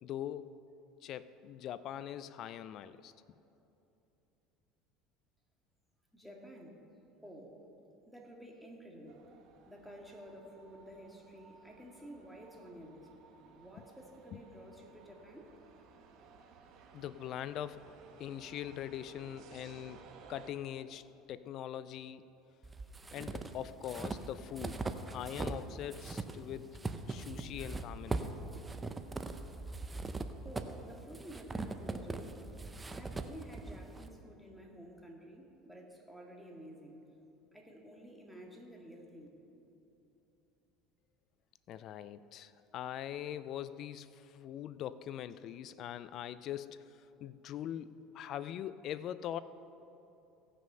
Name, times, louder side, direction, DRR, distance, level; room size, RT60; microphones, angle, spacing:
voice 1, 0.0-0.6 1.0-3.1 14.3-14.4 16.9-17.9 18.2-20.0 20.3-22.2 23.1-24.8 25.1-26.8 27.1-28.3 41.7-49.4, left 11 dB, 55° left, 15 dB, 0.4 m, -42 dB
voice 2, 6.1-6.8 7.2-7.6 8.1-9.3 9.7-13.1 13.5-15.5 30.4-32.5 32.9-37.0 37.5-39.3, equal, ahead, 0 dB, 1.9 m, -51 dB
sound 1, 9.1-20.5, right 5 dB, 55° right, 1.3 m, -58 dB
sound 2, 22.6-25.6 25.9-34.1, right 3 dB, 15° right, 0.7 m, -40 dB
17.0 x 6.2 x 5.5 m, 3.0 s
supercardioid pair, 100°, 0 cm